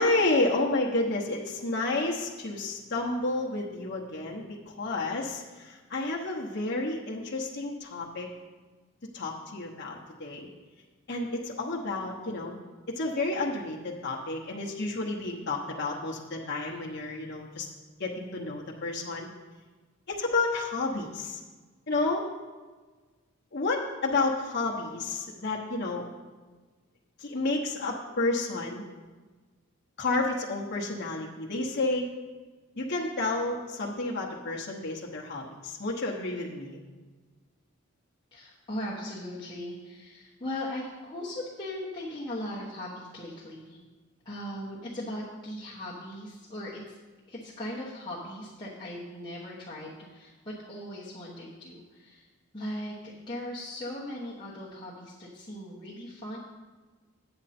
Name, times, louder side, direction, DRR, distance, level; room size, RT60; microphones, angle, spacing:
voice 1, 0.0-8.3 9.1-10.5 11.1-12.6 12.9-17.7 18.0-19.3 20.1-21.4 21.9-22.2 23.5-26.1 27.2-28.8 30.0-32.1 32.8-36.8, left 2 dB, 50° left, -2 dB, 1.0 m, -30 dB
voice 2, 38.3-43.8 44.2-47.0 47.3-52.3 52.5-56.4, left 1 dB, 20° left, -9 dB, 1.1 m, -38 dB
8.8 x 7.6 x 4.3 m, 1.3 s
head